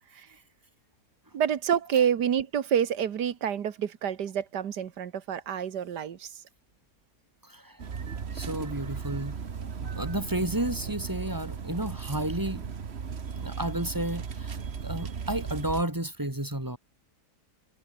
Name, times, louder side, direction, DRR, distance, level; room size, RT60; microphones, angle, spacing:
voice 1, 1.3-6.3, right 8 dB, 80° right, 1.9 m, -28 dB
sound 1, 7.8-15.8, right 6 dB, 40° right, 1.4 m, -36 dB
voice 2, 8.3-12.6 13.3-14.6 14.8-16.8, right 1 dB, 10° right, 3.4 m, -32 dB
omnidirectional pair, 1.8 m